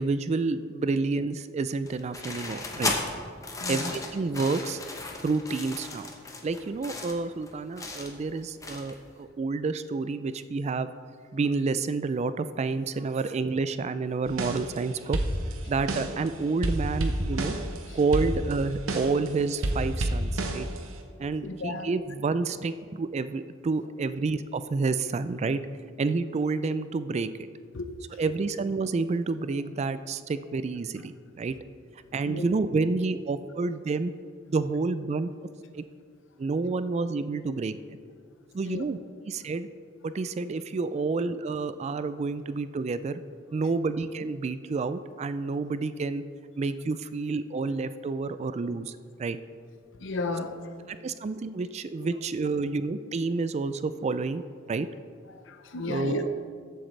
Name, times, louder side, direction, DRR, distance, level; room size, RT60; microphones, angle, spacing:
voice 1, 0.0-2.9 3.7-4.8 5.2-6.1 6.4-10.9 11.3-15.2 15.7-17.6 17.9-20.7 21.2-25.6 26.0-27.5 28.2-31.5 32.1-34.1 34.5-35.3 35.7-35.8 36.4-37.8 38.5-39.0 39.3-39.7 40.0-43.2 43.5-46.2 46.6-49.4 50.9-54.4 54.7-54.9 55.9-56.3, right 4 dB, 35° right, 12 dB, 0.3 m, -29 dB
sound 1, 1.9-9.1, left 3 dB, 15° left, 0.9 m, -35 dB
voice 2, 3.6-4.0 21.4-21.9 27.7-27.9 32.2-32.5 38.7-38.9 50.0-50.8 55.5-56.2, left 3 dB, 65° left, 8 dB, 0.7 m, -34 dB
sound 2, 14.3-14.8 15.1-16.3 16.6-19.3 19.6-21.0, right 1 dB, 85° right, 0.9 m, -29 dB
14.0 x 7.9 x 3.3 m, 2.1 s
head